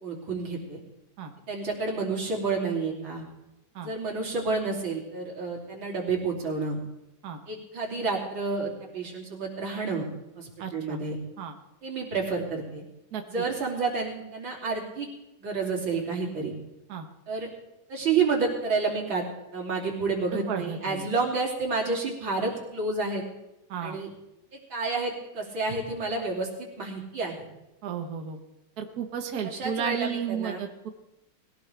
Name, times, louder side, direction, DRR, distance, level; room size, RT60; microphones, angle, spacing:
voice 1, 0.0-0.8 1.5-3.2 3.8-6.8 7.5-10.1 10.4-11.2 11.8-12.8 13.3-15.1 15.4-16.5 17.3-17.5 17.9-19.3 19.5-23.2 23.8-24.1 24.5-27.5 29.4-30.6, right 4 dB, 90° right, -1 dB, 3.7 m, -30 dB
voice 2, 10.6-11.0 11.4-11.5 13.1-13.2 16.9-17.1 20.5-21.1 23.7-24.0 27.8-28.4 28.8-30.9, right 7 dB, 55° right, 5 dB, 1.6 m, -33 dB
21.0 x 16.5 x 3.4 m, 0.93 s
omnidirectional pair, 2.1 m